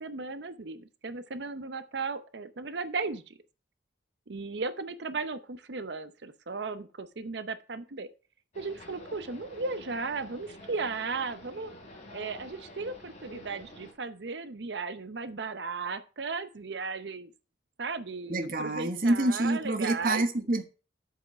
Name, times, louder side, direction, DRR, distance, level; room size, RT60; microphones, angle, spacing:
voice 1, 0.0-3.4 4.3-8.1 8.6-11.7 12.1-17.3 17.8-20.2, right 4 dB, 65° right, 12 dB, 0.7 m, -36 dB
sound 1, 8.5-13.9, equal, 40° left, 3.1 m, -49 dB
voice 2, 18.3-20.6, right 2 dB, 50° right, 7 dB, 1.1 m, -27 dB
8.0 x 4.9 x 6.2 m, 0.34 s
head